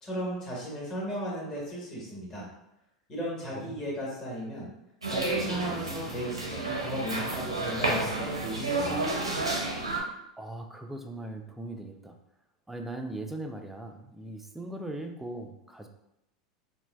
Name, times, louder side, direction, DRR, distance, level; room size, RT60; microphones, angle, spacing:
voice 1, 0.0-2.5 3.1-4.7 5.1-9.0, equal, 25° left, -4 dB, 1.1 m, -35 dB
sound 1, 5.0-10.0, right 2 dB, 90° right, 0.5 m, -31 dB
voice 2, 9.9-12.2 12.7-15.9, right 1 dB, 5° right, 4 dB, 0.3 m, -40 dB
3.2 x 2.2 x 2.2 m, 0.84 s
figure-of-eight pair, 85°, 3 cm